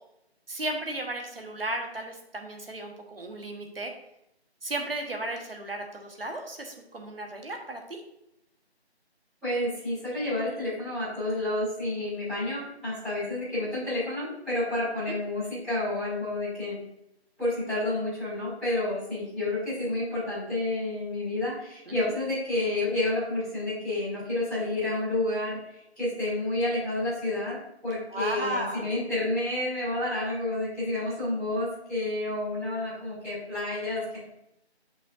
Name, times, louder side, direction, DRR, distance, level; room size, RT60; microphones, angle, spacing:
voice 1, 0.5-3.9 4.6-8.0 15.1-15.2 21.9-22.0 28.1-28.9, right 1 dB, 60° right, 3 dB, 1.4 m, -34 dB
voice 2, 9.4-16.8 17.4-34.2, left 2 dB, ahead, -25 dB, 2.4 m, -30 dB
8.3 x 5.5 x 2.6 m, 0.81 s
figure-of-eight pair, 175°, 33 cm